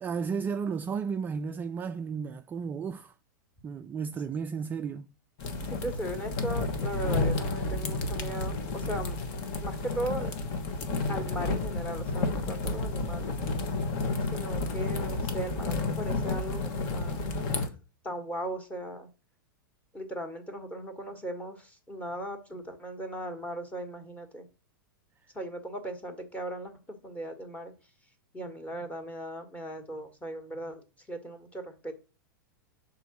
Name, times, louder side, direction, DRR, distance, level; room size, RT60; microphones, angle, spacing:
voice 1, 0.0-3.1 3.6-5.1, right 6 dB, 15° right, 0.3 m, -33 dB
sound 1, 5.4-17.7, left 3 dB, 45° left, 1.2 m, -31 dB
voice 2, 5.4-9.2 9.6-10.4 11.1-13.3 14.3-17.3 18.0-19.1 19.9-24.5 25.3-27.7 28.3-31.9, right 1 dB, 15° left, 1.4 m, -38 dB
6.7 x 3.8 x 6.0 m
figure-of-eight pair, 95°, 11 cm